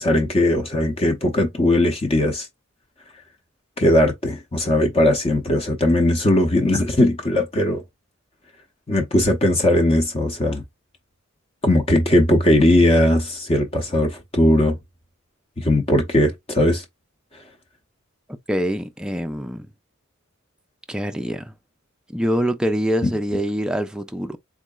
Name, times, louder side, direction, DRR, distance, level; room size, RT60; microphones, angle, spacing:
voice 1, 0.0-2.5 3.8-7.8 8.9-10.6 11.6-14.8 15.6-16.8 23.0-23.1, left 1 dB, 30° left, 0.7 m, -19 dB
voice 2, 18.5-19.7 20.9-21.5 22.1-24.4, equal, 5° right, 0.3 m, -24 dB
3.7 x 3.1 x 2.3 m
head